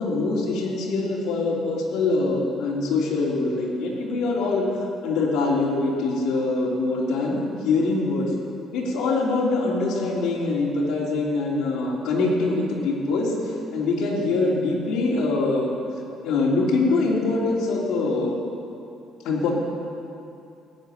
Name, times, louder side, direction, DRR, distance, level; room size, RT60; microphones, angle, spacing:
voice 1, 0.0-8.3 8.7-15.7 16.2-18.4 19.2-19.5, left 3 dB, 80° left, -4 dB, 3.4 m, -24 dB
16.5 x 9.6 x 7.2 m, 2.7 s
cardioid pair, 125°, 0 cm